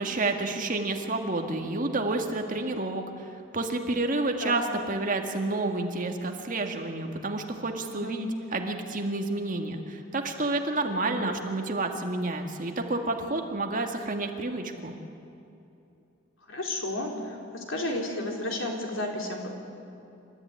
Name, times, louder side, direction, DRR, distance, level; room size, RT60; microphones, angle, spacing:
voice 1, 0.0-3.3 3.5-14.9, right 2 dB, 40° right, 4 dB, 1.9 m, -30 dB
voice 2, 11.0-11.5 16.5-19.5, left 1 dB, 70° left, 1 dB, 4.0 m, -33 dB
28.0 x 14.0 x 9.7 m, 2.8 s
head